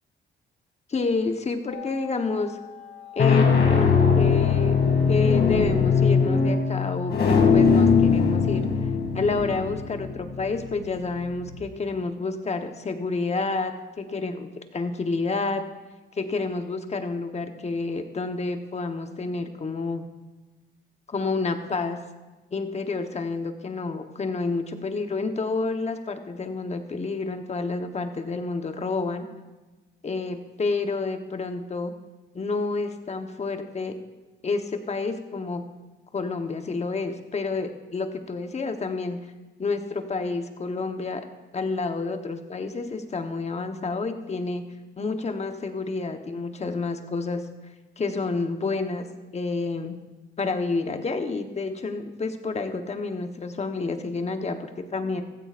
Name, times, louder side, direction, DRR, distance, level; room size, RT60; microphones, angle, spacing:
voice 1, 0.9-2.6 3.2-4.7 5.1-8.7 9.1-15.6 16.2-20.1 21.1-22.0 22.5-29.3 30.0-31.9 32.3-33.9 34.4-35.6 36.1-39.2 39.6-41.2 41.5-44.6 45.0-47.4 48.0-49.1 49.3-49.9 50.4-55.2, left 3 dB, 35° left, 7 dB, 1.1 m, -29 dB
sound 1, 1.7-2.2 2.9-11.6, left 5 dB, 55° left, 2.5 m, -21 dB
15.5 x 14.5 x 2.5 m, 1.2 s
cardioid pair, 90°, 20 cm